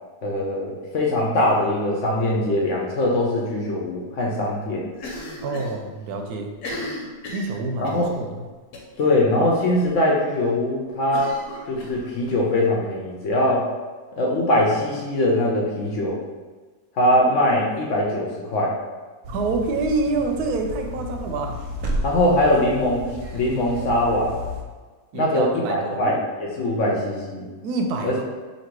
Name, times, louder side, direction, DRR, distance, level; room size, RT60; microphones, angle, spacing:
voice 1, 0.2-4.8 7.8-8.1 9.0-11.4 11.7-13.7 14.2-16.2 17.0-18.8 22.0-24.3 25.1-27.5 28.0-28.2, left 1 dB, 65° left, -2 dB, 0.9 m, -22 dB
Cough, 5.0-5.8 6.0-6.1 6.5-8.1 8.7-9.0 9.3-9.4 9.8-9.9 11.1-12.4, left 1 dB, 85° left, 1.3 m, -35 dB
voice 2, 5.4-6.5 7.3-8.4 19.3-21.6 25.1-26.0 27.6-28.2, right 3 dB, 90° right, 3 dB, 1.1 m, -27 dB
sound 1, 19.2-24.6, left 1 dB, 65° right, 0.9 m, -32 dB
2.9 x 2.8 x 4.4 m, 1.4 s
omnidirectional pair, 1.6 m